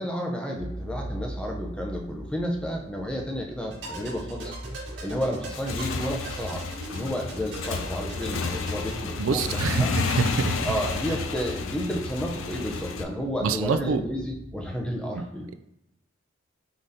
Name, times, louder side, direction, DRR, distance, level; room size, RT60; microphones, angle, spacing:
voice 1, 0.0-4.5 5.0-6.6 6.9-9.9 10.6-15.5, equal, 5° left, 0 dB, 0.5 m, -31 dB
sound 1, 0.5-15.0, equal, 60° left, 1.4 m, -42 dB
sound 2, 3.7-9.0, right 2 dB, 70° right, 1.5 m, -41 dB
Motorcycle / Engine, 5.4-13.0, left 4 dB, 80° left, 0.4 m, -31 dB
voice 2, 9.2-10.5 13.4-14.0, right 5 dB, 85° right, 10 dB, 0.4 m, -25 dB
4.9 x 3.9 x 2.7 m, 0.83 s
head